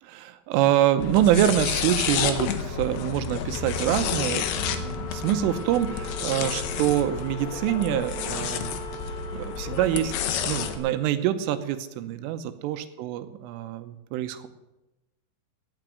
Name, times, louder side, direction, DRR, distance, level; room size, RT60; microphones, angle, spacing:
voice 1, 0.0-8.7 9.3-14.5, right 12 dB, 80° right, 10 dB, 3.3 m, -25 dB
sound 1, 0.6-11.6, right 3 dB, 60° right, 2.8 m, -51 dB
sound 2, 1.0-10.8, left 8 dB, 75° left, 2.4 m, -30 dB
Wind instrument woodwind instrument, 3.5-12.1, right 1 dB, 55° left, 2.1 m, -42 dB
17.0 x 6.0 x 9.1 m, 0.97 s
omnidirectional pair, 5.9 m